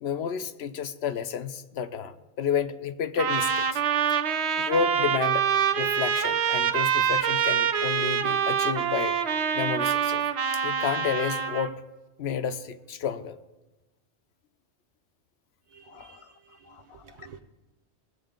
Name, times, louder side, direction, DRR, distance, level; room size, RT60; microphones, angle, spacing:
voice 1, 0.0-3.8 4.6-5.5 5.8-9.2 9.5-10.2 10.6-11.8 12.2-13.4 15.9-16.2 16.7-17.3, left 7 dB, 65° left, 11 dB, 0.8 m, -31 dB
Trumpet, 3.2-11.7, right 8 dB, 70° right, 0.9 m, -25 dB
voice 2, 15.7-17.4, right 6 dB, 45° right, 3 dB, 0.6 m, -52 dB
19.0 x 7.7 x 3.7 m, 1.1 s
omnidirectional pair, 1.2 m